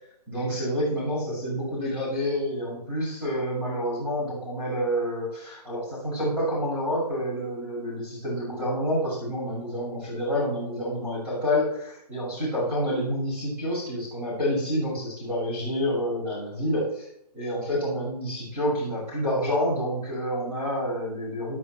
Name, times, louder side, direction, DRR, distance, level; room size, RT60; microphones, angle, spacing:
voice 1, 0.3-17.1 17.3-21.5, equal, 10° right, -10 dB, 6.1 m, -28 dB
19.0 x 11.0 x 3.1 m, 0.73 s
hypercardioid pair, 165°, 21 cm